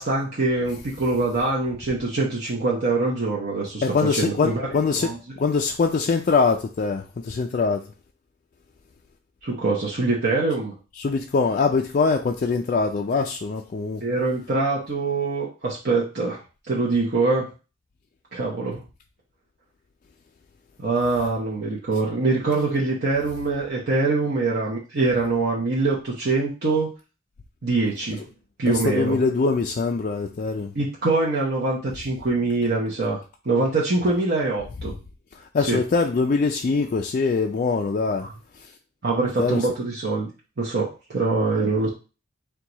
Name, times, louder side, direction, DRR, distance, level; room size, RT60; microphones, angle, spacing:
voice 1, 0.0-3.8 4.1-4.6 5.0-5.2 9.4-10.8 14.0-16.4 16.7-17.5 18.3-18.8 20.8-26.9 27.6-28.2 28.6-29.2 30.7-34.9 35.7-35.8 38.2-38.3 39.0-40.3 40.6-41.9, right 3 dB, 55° right, 0.9 m, -24 dB
voice 2, 3.8-5.1 5.4-7.8 11.0-14.0 28.7-30.7 35.5-38.3 39.4-39.7, left 4 dB, 40° left, 0.3 m, -23 dB
4.6 x 2.3 x 3.9 m
head